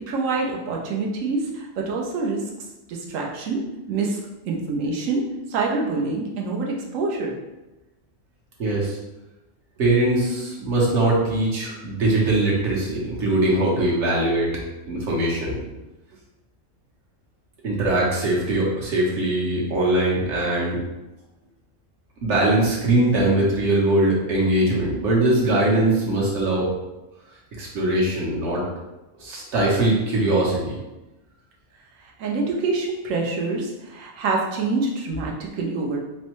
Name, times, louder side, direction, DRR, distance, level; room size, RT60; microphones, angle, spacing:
voice 1, 0.1-2.5 2.9-4.2 4.5-7.4 32.0-36.0, right 3 dB, 85° right, -1 dB, 1.1 m, -26 dB
voice 2, 8.6-9.0 9.8-14.5 14.9-15.6 17.6-20.8 22.2-26.7 27.6-28.7 29.2-30.8, right 1 dB, 65° right, -4 dB, 1.2 m, -21 dB
4.4 x 2.1 x 3.0 m, 1.0 s
omnidirectional pair, 1.3 m